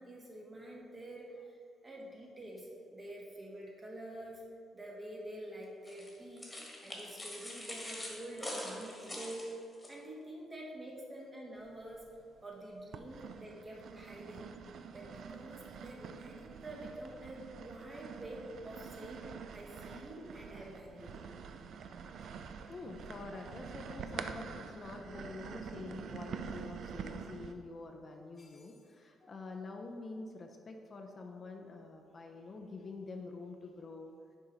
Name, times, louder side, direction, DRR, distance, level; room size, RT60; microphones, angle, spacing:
voice 1, 0.0-1.6 1.8-4.4 4.7-6.5 6.8-9.5 9.9-12.0 12.4-14.5 14.9-19.2 19.5-21.2, right 1 dB, 25° right, -3 dB, 1.5 m, -47 dB
sound 1, 5.9-9.9, left 1 dB, 15° left, 1.5 m, -44 dB
sound 2, 11.7-12.4 12.9-27.5, right 6 dB, 65° right, 0.3 m, -46 dB
voice 2, 22.7-34.1, left 3 dB, 40° left, 3 dB, 0.6 m, -46 dB
6.6 x 4.6 x 4.0 m, 2.4 s
cardioid pair, 90°, 0 cm